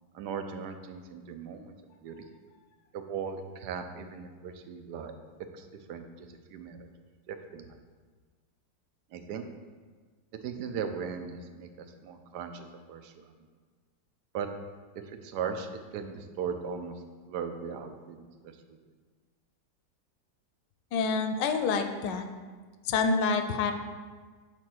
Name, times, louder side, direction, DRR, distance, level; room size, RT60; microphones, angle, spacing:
voice 1, 0.1-1.7 2.0-2.3 2.9-5.1 5.5-6.9 7.3-7.8 9.1-9.4 10.4-13.3 14.3-14.5 15.0-15.7 15.9-18.8, right 6 dB, 75° right, 7 dB, 1.1 m, -38 dB
voice 2, 20.9-22.3 22.8-23.7, left 4 dB, 80° left, 7 dB, 1.3 m, -27 dB
5.7 x 4.4 x 6.2 m, 1.5 s
omnidirectional pair, 1.9 m